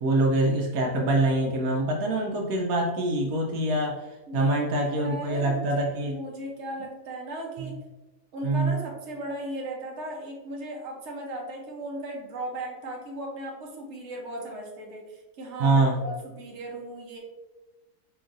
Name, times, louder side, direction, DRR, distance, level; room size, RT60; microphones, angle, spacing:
voice 1, 0.0-6.2 7.6-7.7 8.4-8.8 15.6-16.0, right 2 dB, 80° right, 0 dB, 1.1 m, -25 dB
voice 2, 4.3-7.8 8.3-17.2, right 1 dB, 55° right, -1 dB, 1.1 m, -37 dB
4.5 x 3.0 x 2.5 m, 1.1 s
omnidirectional pair, 1.5 m